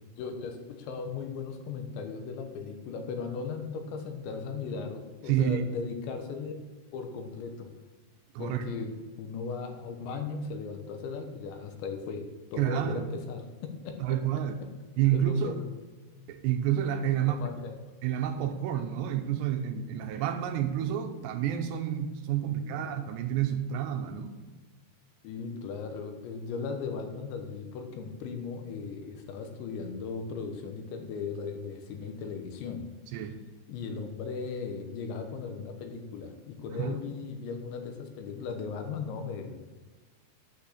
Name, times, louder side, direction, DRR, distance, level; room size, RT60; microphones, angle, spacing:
voice 1, 0.2-6.6 6.9-7.7 8.4-14.7 15.1-15.6 17.1-17.7 22.4-22.8 25.2-32.9 33.7-39.6, left 5 dB, 90° left, 5 dB, 3.5 m, -37 dB
voice 2, 5.3-5.6 8.3-8.6 12.6-13.1 14.0-14.7 15.0-15.5 16.3-17.4 18.0-24.4 33.1-33.4 36.7-37.0, right 10 dB, 80° right, 7 dB, 2.8 m, -29 dB
9.0 x 8.6 x 6.6 m, 1.2 s
omnidirectional pair, 5.1 m